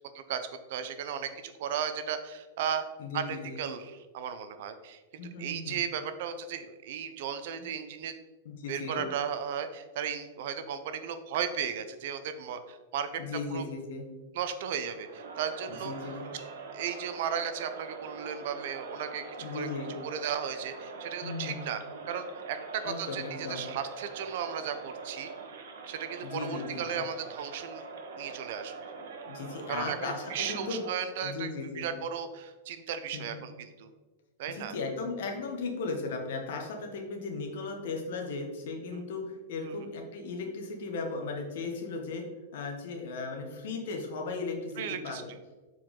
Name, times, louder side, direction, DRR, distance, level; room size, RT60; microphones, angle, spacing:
voice 1, 0.7-2.8 3.1-8.1 8.7-13.2 13.5-13.6 14.3-15.9 16.7-19.2 19.5-19.7 20.0-21.8 22.1-25.3 25.9-27.8 28.2-28.7 29.7-31.5 31.8-33.9 34.4-34.7 38.9-39.0 39.6-39.7 44.8-45.2, right 8 dB, 55° right, 10 dB, 0.6 m, -35 dB
voice 2, 3.0-3.6 5.2-5.8 8.4-9.0 13.2-14.0 15.7-16.3 19.4-19.9 21.2-21.7 22.8-23.6 26.2-27.0 29.3-30.8 31.2-31.9 33.1-33.4 34.5-42.2 42.5-45.3, left 4 dB, 65° left, 2 dB, 1.5 m, -36 dB
Crowd, 14.9-31.2, right 4 dB, 80° right, 1.1 m, -43 dB
7.2 x 4.6 x 3.8 m, 1.2 s
supercardioid pair, 165°, 0 cm